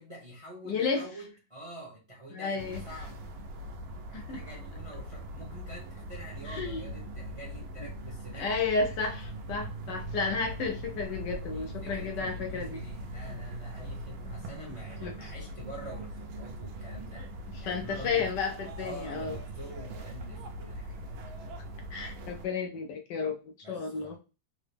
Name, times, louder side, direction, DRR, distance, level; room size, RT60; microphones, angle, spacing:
voice 1, 0.0-3.2 4.1-8.5 11.5-17.3 17.6-18.3 18.8-21.0 23.6-24.2, right 1 dB, 25° right, -3 dB, 0.7 m, -46 dB
voice 2, 0.7-1.1 2.3-2.8 4.1-4.4 6.5-6.8 8.3-12.8 15.0-15.3 17.7-19.3 21.9-23.4 23.7-24.2, left 4 dB, 75° left, 3 dB, 1.1 m, -32 dB
sound 1, 2.6-22.5, right 1 dB, 85° right, 1.4 m, -41 dB
3.8 x 2.0 x 3.3 m, 0.31 s
omnidirectional pair, 2.1 m